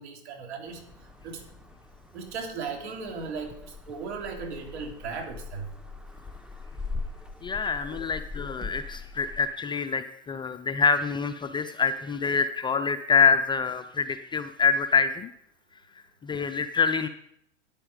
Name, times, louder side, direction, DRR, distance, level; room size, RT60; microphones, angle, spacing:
voice 1, 0.0-1.4 2.1-5.7 7.9-8.0, right 5 dB, 65° right, 2 dB, 3.2 m, -37 dB
sound 1, 0.7-9.5, left 3 dB, ahead, 1.0 m, -41 dB
voice 2, 7.4-15.3 16.2-17.1, left 5 dB, 15° left, 8 dB, 0.4 m, -26 dB
9.9 x 9.5 x 5.1 m, 0.73 s
hypercardioid pair, 105°, 35 cm